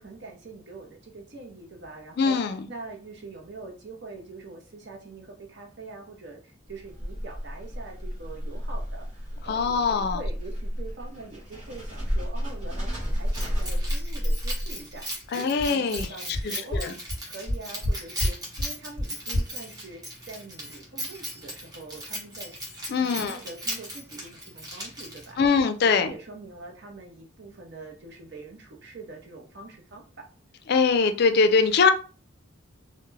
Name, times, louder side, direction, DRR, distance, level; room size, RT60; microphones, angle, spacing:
voice 1, 0.0-2.4 2.7-22.5 23.0-25.4 25.8-30.3, right 3 dB, 60° right, 1 dB, 0.7 m, -44 dB
voice 2, 2.2-2.7 9.5-10.2 15.3-16.1 16.4-16.9 22.9-23.4 25.4-26.1 30.7-31.9, left 5 dB, 55° left, 8 dB, 0.3 m, -22 dB
sound 1, 6.7-15.0, equal, 35° right, 1.1 m, -31 dB
Keys jangling, 13.3-25.5, equal, 20° right, 0.7 m, -38 dB
sound 2, 15.2-15.3 15.6-15.7 16.0-16.1 16.3-16.4 16.7-16.8 17.1-17.2 17.5-17.9 18.2-18.3 18.6-18.7 19.0-19.1 19.3-19.4, left 1 dB, 75° right, 1.0 m, -26 dB
2.2 x 2.1 x 3.1 m, 0.36 s
head